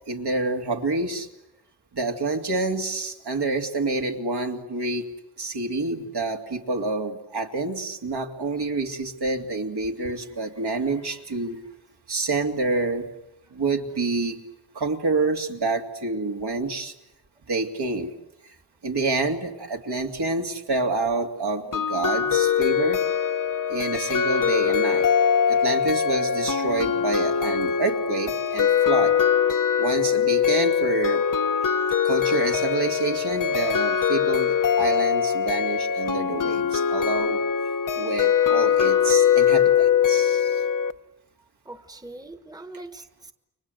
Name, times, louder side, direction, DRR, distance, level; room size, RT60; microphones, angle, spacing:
voice 1, 0.1-1.3 1.9-5.1 5.4-11.6 12.1-13.1 13.5-14.4 14.7-16.9 17.5-18.1 18.4-18.5 18.8-23.0 23.7-25.1 25.5-29.1 29.8-31.2 32.0-37.4 37.9-40.6, right 3 dB, 75° right, 2 dB, 2.8 m, -27 dB
sound 1, 21.7-40.9, left 8 dB, 55° left, 0.9 m, -22 dB
voice 2, 41.6-43.3, right 2 dB, 10° right, 10 dB, 1.3 m, -42 dB
30.0 x 24.0 x 8.0 m, 0.88 s
wide cardioid pair, 105°, 40 cm